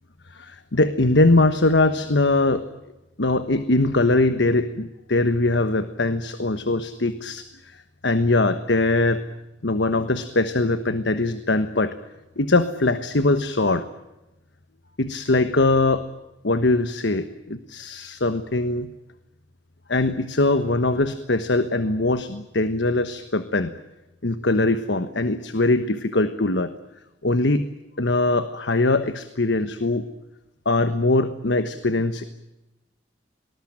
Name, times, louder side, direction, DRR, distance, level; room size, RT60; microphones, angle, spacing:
voice 1, 0.3-2.7 3.2-9.2 9.6-12.0 12.4-13.9 15.0-16.1 16.4-18.9 19.9-23.7 24.2-26.7 27.2-27.7 28.0-30.1 30.6-32.2, left 2 dB, 80° left, 11 dB, 1.3 m, -21 dB
26.0 x 20.0 x 8.9 m, 0.97 s
head